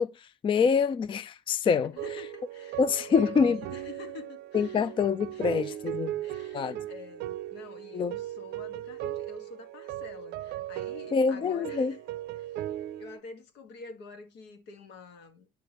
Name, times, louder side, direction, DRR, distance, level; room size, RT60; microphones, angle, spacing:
voice 1, 0.0-1.9 2.8-3.6 4.5-6.1 6.5-6.8 7.9-8.1 11.1-11.9, left 6 dB, 30° left, 0.4 m, -26 dB
voice 2, 1.8-4.9 5.3-12.6 13.0-15.5, left 4 dB, 85° left, 1.5 m, -47 dB
sound 1, 2.0-13.2, right 13 dB, 80° right, 0.5 m, -37 dB
9.2 x 4.9 x 3.0 m
cardioid pair, 110°, 17 cm